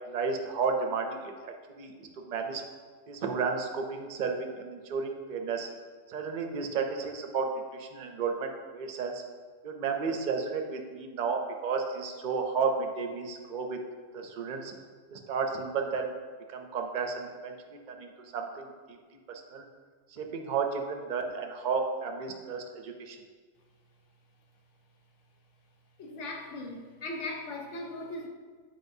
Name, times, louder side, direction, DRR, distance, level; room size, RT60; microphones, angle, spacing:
voice 1, 0.1-2.6 3.1-5.7 6.1-9.2 9.6-13.8 14.1-14.7 15.1-16.1 16.5-19.0 19.3-19.7 20.1-23.2, right 5 dB, 50° right, 3 dB, 0.6 m, -33 dB
voice 2, 26.0-28.3, left 2 dB, 65° left, 2 dB, 1.1 m, -38 dB
7.6 x 5.0 x 2.7 m, 1.5 s
omnidirectional pair, 1.4 m